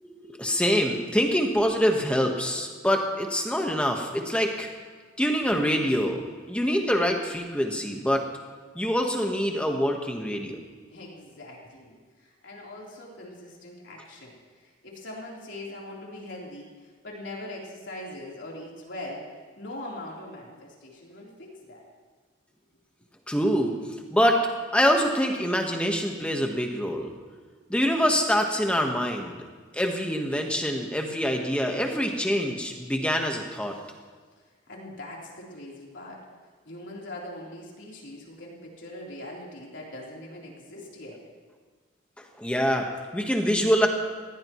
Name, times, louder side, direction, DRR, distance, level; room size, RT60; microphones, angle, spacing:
voice 1, 0.0-4.7 5.2-6.2 6.5-8.2 8.7-10.6 23.3-23.7 24.1-24.5 24.7-27.1 27.7-29.4 29.7-33.8 42.2-43.9, equal, 5° left, 2 dB, 1.3 m, -25 dB
voice 2, 10.7-19.3 19.6-21.8 34.7-36.3 36.6-41.2, left 1 dB, 70° left, -3 dB, 3.7 m, -41 dB
20.0 x 17.0 x 3.1 m, 1.5 s
head